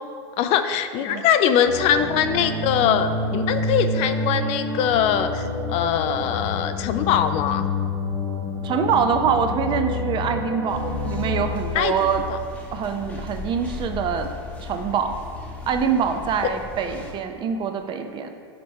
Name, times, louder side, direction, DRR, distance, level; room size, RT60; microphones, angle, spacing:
voice 1, 0.4-7.7 11.7-12.4, left 9 dB, 45° left, 9 dB, 0.4 m, -22 dB
sound 1, 1.6-11.4, left 2 dB, 75° right, 1.7 m, -28 dB
voice 2, 8.6-12.2 12.7-14.3 14.6-15.2 15.7-18.3, right 6 dB, 35° right, 7 dB, 0.5 m, -24 dB
sound 2, 10.7-17.1, left 4 dB, 10° left, 0.9 m, -36 dB
5.1 x 4.4 x 5.3 m, 2.2 s
supercardioid pair, 115°, 14 cm